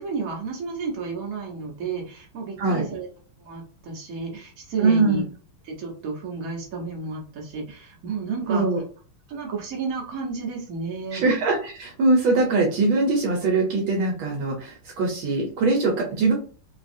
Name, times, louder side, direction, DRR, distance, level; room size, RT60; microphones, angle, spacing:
voice 1, 0.0-3.1 3.4-5.2 5.6-8.6 9.3-11.2, right 4 dB, 50° right, 0 dB, 1.2 m, -32 dB
voice 2, 4.8-5.2 8.5-8.8 11.1-16.3, right 3 dB, 75° right, 0 dB, 1.5 m, -22 dB
4.0 x 2.3 x 2.6 m, 0.39 s
omnidirectional pair, 2.3 m